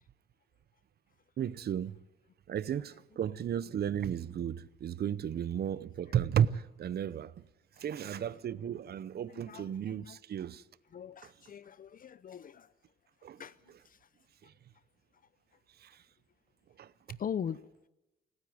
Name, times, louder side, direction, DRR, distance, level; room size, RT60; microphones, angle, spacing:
voice 1, 1.4-2.0 2.5-7.3 7.8-10.6 11.2-11.3 13.2-13.4 14.4-14.5 15.8-16.0 16.8-17.2, right 9 dB, 55° right, 0.7 m, -34 dB
voice 2, 9.3-10.2 10.9-12.7 13.4-13.6 13.8-14.0 17.2-17.6, left 8 dB, 45° left, 0.7 m, -41 dB
28.5 x 9.8 x 9.5 m
cardioid pair, 90°, 20 cm